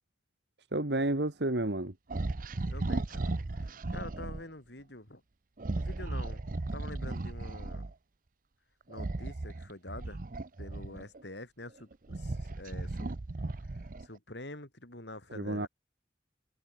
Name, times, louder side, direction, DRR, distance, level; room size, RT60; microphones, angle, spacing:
voice 1, 0.7-1.9 15.4-15.7, right 1 dB, 75° right, 2.1 m, -30 dB
sound 1, 2.1-4.4 5.6-7.9 8.9-11.2 11.8-14.2, right 2 dB, 50° right, 0.7 m, -36 dB
voice 2, 2.7-5.2 5.8-6.4 6.7-7.9 8.9-10.2 10.6-13.1 13.6-15.7, left 1 dB, 80° left, 7.0 m, -46 dB
head